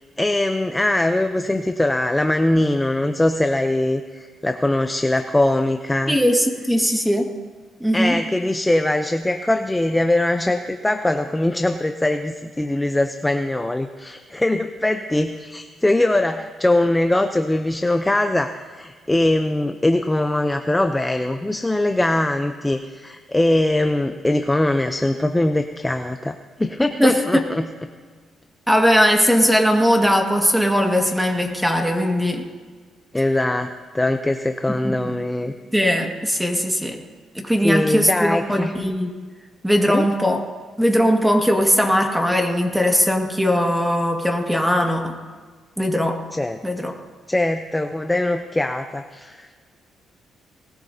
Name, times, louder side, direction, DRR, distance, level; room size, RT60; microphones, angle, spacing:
voice 1, 0.2-6.2 7.9-27.7 33.1-35.5 37.6-38.8 39.9-40.1 46.3-46.6 47.3-49.6, left 1 dB, 10° left, 7 dB, 0.7 m, -21 dB
voice 2, 6.1-7.3 7.8-8.2 27.0-27.4 28.7-32.4 34.7-35.1 35.5-37.0 37.4-39.1 39.6-40.4 40.8-45.1 45.8-46.2 46.6-46.9, equal, 5° right, 2 dB, 1.9 m, -19 dB
20.0 x 17.5 x 2.8 m, 1.5 s
cardioid pair, 90°, 0 cm